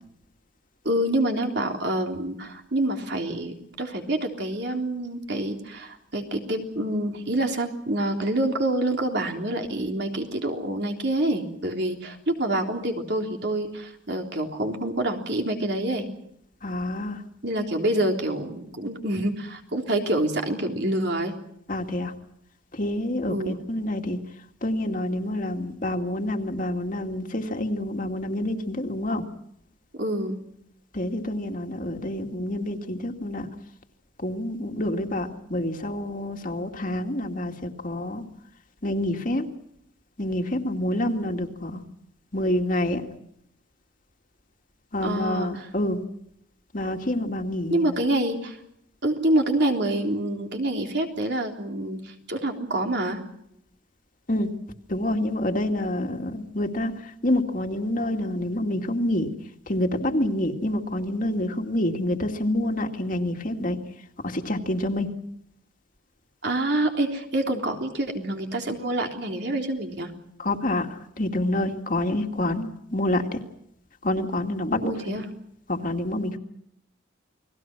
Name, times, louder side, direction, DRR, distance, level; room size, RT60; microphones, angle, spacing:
voice 1, 0.8-16.1 17.4-21.3 23.3-23.6 29.9-30.4 45.0-45.7 47.7-48.6 49.0-53.2 66.4-70.1 74.8-75.3, right 1 dB, 55° right, 3 dB, 3.5 m, -27 dB
voice 2, 16.6-17.2 21.7-22.1 22.8-24.2 24.6-29.2 30.9-33.5 34.2-38.2 38.8-39.5 40.2-41.8 42.3-43.0 44.9-46.0 46.7-48.0 54.3-54.5 54.9-56.9 57.2-59.3 59.7-63.8 64.2-65.1 70.4-70.9 71.2-73.4 74.0-75.2 75.7-76.4, left 1 dB, 45° left, 4 dB, 2.3 m, -27 dB
29.5 x 20.5 x 6.1 m, 0.74 s
head